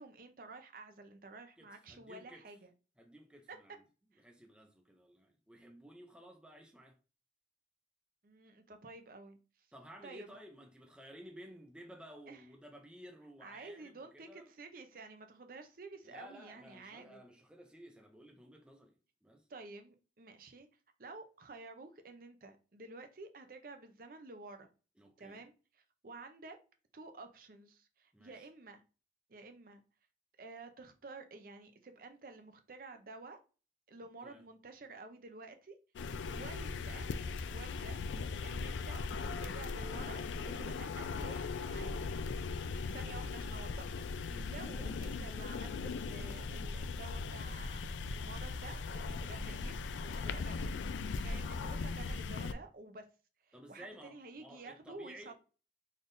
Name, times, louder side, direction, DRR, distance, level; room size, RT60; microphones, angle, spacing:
voice 1, 0.0-2.7 3.5-3.6 4.1-4.2 8.2-9.4 10.0-10.4 12.3-12.4 13.4-17.2 19.5-20.7 21.0-24.7 25.2-25.5 26.0-26.6 26.9-28.8 29.3-29.8 30.4-33.4 33.9-35.8 36.3-37.1 37.5-39.1 39.4-42.0 42.5-47.8 48.1-50.7 51.2-53.1 53.4-55.3, right 3 dB, 50° right, 0.6 m, -51 dB
voice 2, 1.6-2.5 3.0-3.8 4.2-7.0 9.7-14.5 16.0-19.5 25.0-25.4 28.1-28.5 34.2-34.4 36.1-36.5 44.2-44.5 49.1-49.4 51.0-51.5 53.5-55.3, equal, 5° right, 0.5 m, -55 dB
sound 1, 36.0-52.5, left 4 dB, 90° left, 0.4 m, -39 dB
4.0 x 3.4 x 2.6 m
head